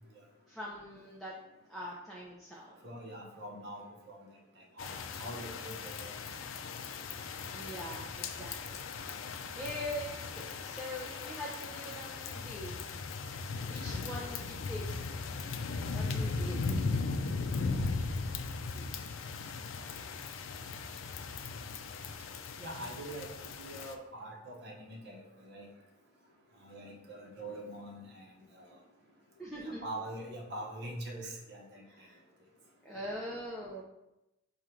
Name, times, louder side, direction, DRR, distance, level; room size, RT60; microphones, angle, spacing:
voice 1, 0.5-1.3 1.7-2.8 7.5-8.9 9.5-12.8 13.6-15.0 15.9-16.8 29.4-29.9 31.9-32.2 32.8-33.8, equal, ahead, -5 dB, 0.5 m, -43 dB
voice 2, 2.8-4.2 4.8-4.9 5.2-6.1 9.6-9.7 18.7-18.9 22.6-25.7 26.6-28.3 28.6-28.7 29.6-31.8, right 1 dB, 55° right, -1 dB, 0.9 m, -44 dB
sound 1, 4.8-23.9, left 4 dB, 70° left, 0.4 m, -38 dB
5.0 x 2.4 x 4.4 m, 0.94 s
head